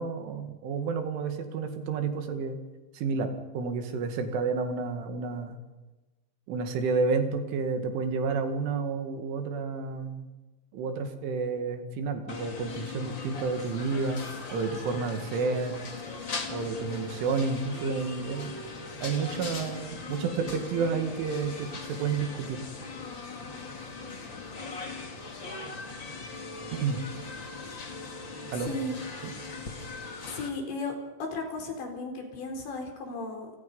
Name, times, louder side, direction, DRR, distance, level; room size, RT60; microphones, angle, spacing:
voice 1, 0.0-2.6 2.9-5.6 6.5-10.3 10.7-14.2 14.5-15.8 16.5-18.6 19.0-22.6 26.7-27.0 28.5-28.7 29.2-29.3, right 4 dB, 85° right, 6 dB, 4.5 m, -30 dB
sound 1, 12.3-30.5, left 3 dB, 30° left, 2.4 m, -39 dB
voice 2, 28.6-28.9 30.3-30.9 31.3-33.5, left 2 dB, 70° left, 3 dB, 6.2 m, -35 dB
28.5 x 26.0 x 5.5 m, 1.2 s
omnidirectional pair, 5.4 m